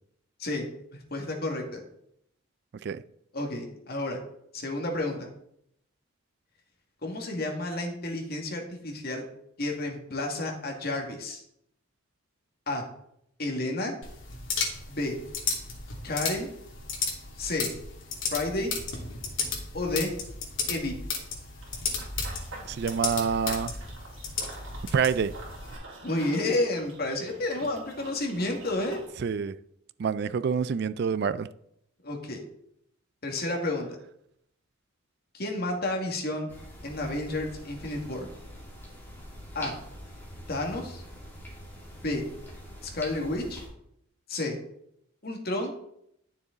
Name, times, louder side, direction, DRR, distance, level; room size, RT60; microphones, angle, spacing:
voice 1, 0.9-1.8 3.3-4.2 4.5-5.3 7.0-9.2 9.6-11.4 12.7-12.8 13.4-14.0 14.9-15.1 16.0-16.5 17.4-17.7 18.3-18.7 19.7-20.1 20.7-20.9 26.0-29.0 32.0-32.4 33.2-33.9 35.3-36.5 36.8-38.3 39.5-39.7 40.5-41.0 42.0-42.2 42.8-43.7 44.3-44.5 45.2-45.7, left 2 dB, 50° left, 2.1 m, -31 dB
sound 1, 14.0-25.8, left 5 dB, 70° left, 2.7 m, -34 dB
Run / Bird vocalization bird call bird song, 21.6-29.1, right 2 dB, 75° right, 3.1 m, -46 dB
voice 2, 22.7-23.7 24.9-25.3 29.2-29.5 30.0-31.5, right 6 dB, 55° right, 0.3 m, -27 dB
sound 2, 36.5-43.7, equal, 10° left, 2.7 m, -44 dB
12.0 x 6.8 x 3.9 m
head